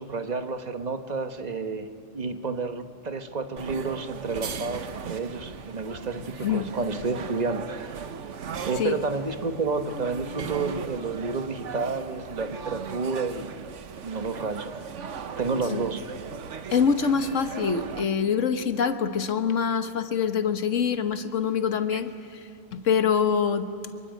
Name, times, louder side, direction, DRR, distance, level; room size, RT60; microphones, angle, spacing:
voice 1, 0.0-8.0 8.7-13.7 14.0-14.8 15.4-16.0 21.9-22.0, right 4 dB, 35° right, 8 dB, 1.3 m, -30 dB
sound 1, 3.6-18.0, right 6 dB, 75° right, 1.3 m, -38 dB
voice 2, 16.7-22.1 22.7-23.7, left 6 dB, 80° left, 10 dB, 1.6 m, -24 dB
24.5 x 23.0 x 9.2 m, 2.4 s
omnidirectional pair, 1.3 m